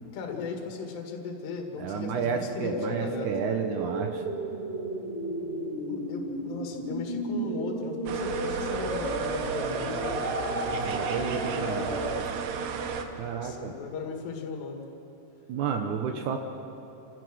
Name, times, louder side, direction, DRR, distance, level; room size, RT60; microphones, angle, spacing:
voice 1, 0.1-2.8 3.0-3.3 5.9-10.2 11.3-12.2 13.1-14.9, left 5 dB, 75° left, 2 dB, 4.0 m, -37 dB
voice 2, 1.8-4.2 10.8-12.0 13.2-13.7 15.5-16.4, right 6 dB, 90° right, 5 dB, 1.7 m, -31 dB
sound 1, 2.7-12.2, right 1 dB, 20° right, 1.8 m, -33 dB
sound 2, 8.1-13.0, right 6 dB, 70° right, 3.1 m, -33 dB
28.5 x 16.0 x 6.3 m, 2.9 s
omnidirectional pair, 5.0 m